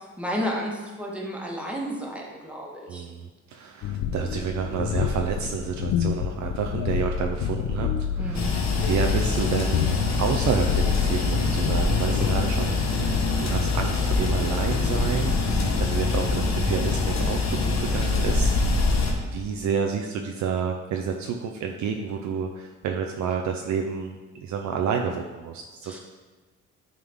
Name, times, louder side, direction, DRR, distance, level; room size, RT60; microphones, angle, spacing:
voice 1, 0.2-3.0 8.2-8.6 25.8-26.0, equal, 5° right, -2 dB, 1.5 m, -32 dB
voice 2, 2.9-7.9 8.1-9.9 10.2-18.9 19.2-26.0, right 6 dB, 70° right, 3 dB, 0.6 m, -29 dB
sound 1, 3.8-13.4, left 8 dB, 80° left, 0.5 m, -28 dB
sound 2, 8.3-19.1, left 3 dB, 60° left, 1.1 m, -24 dB
9.2 x 3.8 x 3.6 m, 1.3 s
cardioid pair, 90°, 30 cm